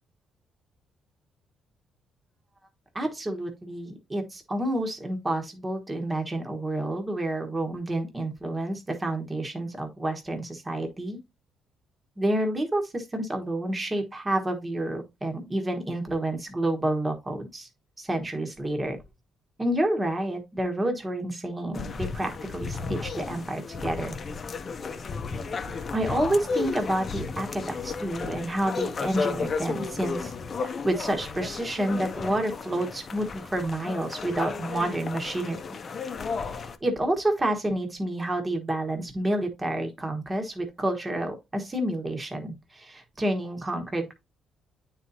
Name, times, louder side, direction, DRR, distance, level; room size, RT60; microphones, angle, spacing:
voice 1, 2.9-11.2 12.2-17.7 18.0-19.0 19.6-24.2 25.7-30.3 30.6-35.6 36.4-44.1, right 1 dB, 20° right, 1.3 m, -29 dB
sound 1, 21.7-36.8, left 5 dB, 45° left, 0.6 m, -34 dB
8.9 x 4.1 x 2.7 m
cardioid pair, 90°, 0 cm